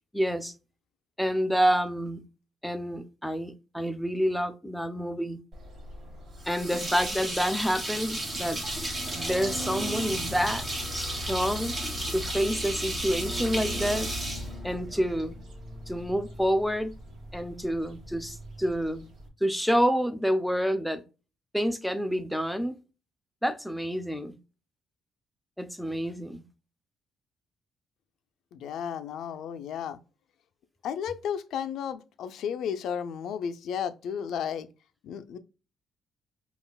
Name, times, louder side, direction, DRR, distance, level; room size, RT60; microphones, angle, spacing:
voice 1, 0.1-0.5 1.2-2.2 2.6-5.4 6.5-8.6 9.2-10.7 10.9-11.7 12.1-14.1 14.6-15.4 15.9-16.9 17.3-19.1 19.4-21.0 21.5-22.8 23.4-24.3 25.6-26.4, equal, ahead, 0.5 m, -28 dB
sound 1, 5.5-19.3, equal, 55° right, 1.3 m, -40 dB
sound 2, 6.4-15.2, right 1 dB, 25° right, 1.5 m, -34 dB
voice 2, 28.5-30.0 30.8-34.7 35.0-35.4, left 8 dB, 75° left, 0.4 m, -33 dB
5.3 x 2.4 x 2.2 m
cardioid pair, 90°, 0 cm